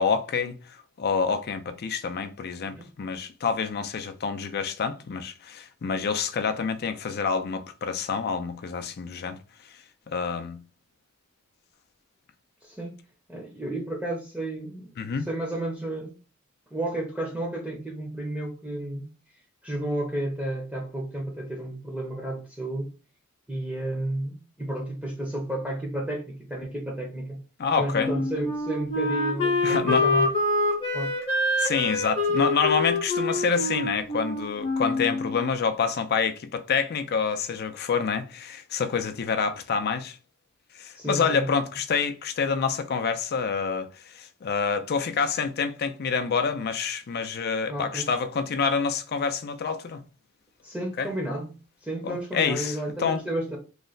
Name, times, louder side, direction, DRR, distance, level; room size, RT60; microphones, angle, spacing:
voice 1, 0.0-9.4 10.1-10.6 15.0-15.3 27.6-28.1 29.6-30.1 31.6-40.2 40.8-50.0 51.0-51.1 52.0-53.2, left 5 dB, 50° left, 0.4 m, -27 dB
voice 2, 12.6-13.0 13.3-16.2 16.7-19.1 19.6-22.9 23.5-27.4 27.8-30.3 30.9-31.2 40.9-41.5 47.7-48.1 50.6-51.5 51.8-53.6, right 1 dB, 5° right, 0.6 m, -32 dB
Wind instrument woodwind instrument, 27.9-35.5, left 2 dB, 30° left, 0.8 m, -26 dB
3.1 x 2.1 x 3.8 m
head